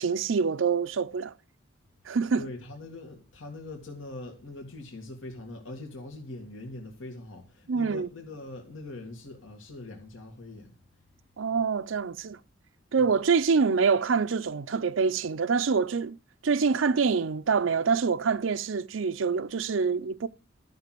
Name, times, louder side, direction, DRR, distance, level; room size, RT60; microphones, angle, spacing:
voice 1, 0.0-1.3 2.1-2.4 7.7-8.1 11.4-12.4 12.9-16.2 16.4-20.3, right 5 dB, 85° right, 0.6 m, -25 dB
voice 2, 2.4-10.7 13.0-13.2, left 2 dB, 85° left, 2.2 m, -42 dB
13.0 x 5.9 x 7.6 m
head